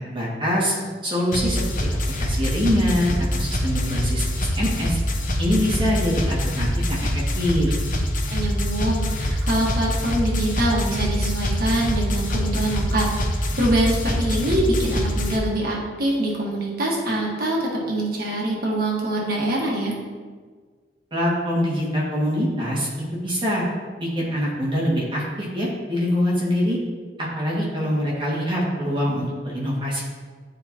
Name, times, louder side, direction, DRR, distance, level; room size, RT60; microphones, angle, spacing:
voice 1, 0.1-0.7 1.0-5.0 5.4-7.1 7.4-7.7 21.1-22.9 23.2-23.7 24.0-26.8 27.2-30.0, equal, 30° right, -6 dB, 1.9 m, -24 dB
sound 1, 1.3-15.4, equal, 50° left, 0.8 m, -24 dB
voice 2, 8.3-19.9, right 1 dB, 60° right, -3 dB, 1.4 m, -24 dB
9.8 x 4.7 x 2.9 m, 1.5 s
head